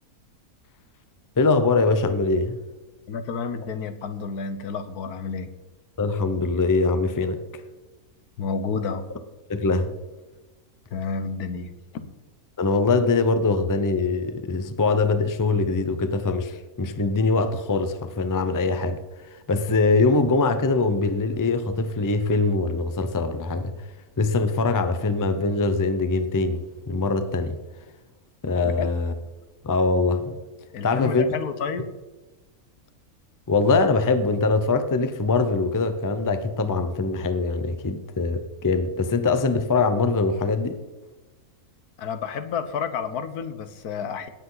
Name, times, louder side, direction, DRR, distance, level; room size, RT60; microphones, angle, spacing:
voice 1, 1.4-2.6 6.0-7.4 9.5-9.9 12.6-19.0 19.5-23.7 24.2-27.6 28.4-29.1 29.6-30.4 30.8-31.3 33.5-40.8, left 3 dB, 25° left, 0.4 m, -23 dB
voice 2, 3.1-5.5 8.4-9.1 10.9-12.1 28.8-28.9 30.7-31.9 42.0-44.3, left 5 dB, 85° left, 1.5 m, -30 dB
17.5 x 8.2 x 4.0 m
omnidirectional pair, 1.6 m